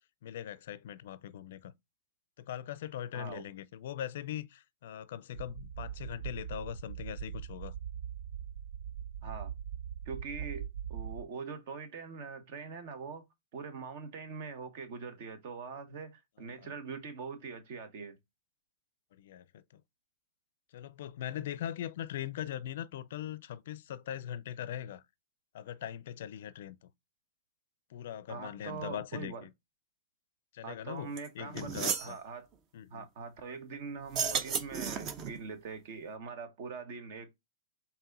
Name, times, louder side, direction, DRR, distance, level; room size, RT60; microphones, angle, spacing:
voice 1, 0.2-1.7 2.4-7.7 16.4-16.7 19.1-19.8 20.7-25.0 25.5-26.9 27.9-29.5 30.5-32.2 32.7-33.1, left 10 dB, 60° left, 0.4 m, -41 dB
voice 2, 3.1-3.4 9.2-9.5 10.0-13.2 13.5-18.2 28.3-29.5 30.6-32.5 32.9-37.3, right 5 dB, 55° right, 1.1 m, -43 dB
sound 1, 5.3-11.2, right 9 dB, 70° right, 0.3 m, -41 dB
sound 2, 31.2-31.3 31.6-32.1 34.0-35.4, right 6 dB, 35° right, 0.7 m, -33 dB
4.6 x 2.8 x 3.8 m
hypercardioid pair, 115°, 0 cm